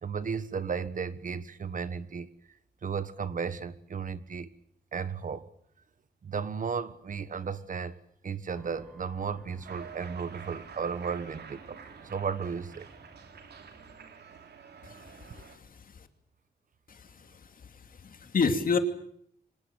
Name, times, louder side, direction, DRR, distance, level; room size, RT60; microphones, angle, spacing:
voice 1, 0.0-2.3 2.8-4.5 4.9-5.5 6.2-8.0 8.2-12.9, right 6 dB, 55° right, 14 dB, 1.4 m, -34 dB
sound 1, 8.5-14.0, equal, 5° left, 3.7 m, -56 dB
Cheering, 9.6-15.6, right 7 dB, 85° right, 3.1 m, -48 dB
voice 2, 14.8-16.1 16.9-18.8, left 5 dB, 55° left, 8 dB, 2.7 m, -32 dB
25.0 x 18.5 x 9.0 m, 0.67 s
wide cardioid pair, 125°, 17 cm